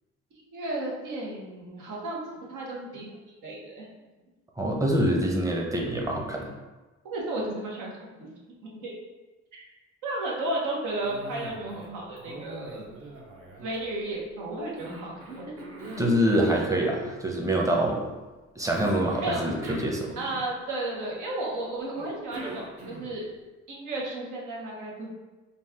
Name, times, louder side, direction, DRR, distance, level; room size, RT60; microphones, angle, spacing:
voice 1, 0.5-3.9 7.0-8.3 8.7-8.9 9.5-9.6 10.0-12.8 13.6-15.7 19.2-19.4 20.2-23.2 23.7-25.1, right 2 dB, 80° right, -3 dB, 1.1 m, -33 dB
voice 2, 4.6-6.5 16.0-18.0 18.6-20.1, right 1 dB, 10° right, 0 dB, 0.7 m, -25 dB
Cough, 11.0-11.9 12.2-14.2 14.8-16.7 18.7-20.7 21.9-23.3, right 1 dB, 50° right, 0.9 m, -42 dB
4.1 x 2.4 x 3.5 m, 1.2 s
cardioid pair, 90°, 30 cm